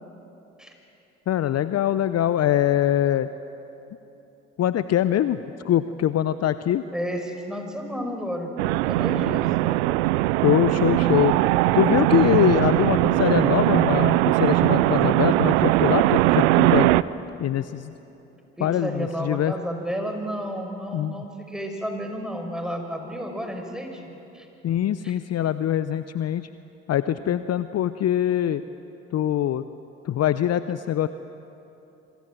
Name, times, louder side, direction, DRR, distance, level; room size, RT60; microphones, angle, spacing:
voice 1, 1.3-3.3 4.6-5.4 5.6-6.8 10.4-11.3 11.7-16.9 17.4-17.9 18.6-19.5 20.9-21.1 24.6-26.5 26.9-28.6 29.1-29.7 30.0-31.1, left 11 dB, 45° left, 13 dB, 0.8 m, -23 dB
voice 2, 6.9-9.5 18.6-24.5 25.0-25.1 27.2-27.4, equal, ahead, 4 dB, 5.9 m, -32 dB
sound 1, 8.6-17.0, right 17 dB, 75° right, 0.6 m, -20 dB
27.0 x 24.5 x 7.6 m, 2.9 s
hypercardioid pair, 50°, 34 cm